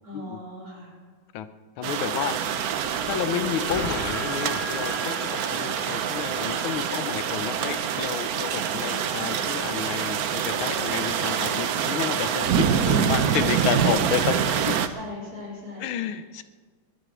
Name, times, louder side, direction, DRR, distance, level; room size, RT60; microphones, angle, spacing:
voice 1, 0.0-1.0 8.6-9.0 14.8-16.2, left 2 dB, 45° right, -4 dB, 4.9 m, -40 dB
voice 2, 1.8-2.6 3.1-14.8 15.8-16.4, left 9 dB, 80° left, 11 dB, 1.6 m, -31 dB
sound 1, 1.8-14.9, right 8 dB, 60° right, 1.0 m, -26 dB
sound 2, 2.7-7.8, left 2 dB, 30° left, 2.3 m, -38 dB
20.5 x 10.5 x 6.1 m, 1.5 s
omnidirectional pair, 2.3 m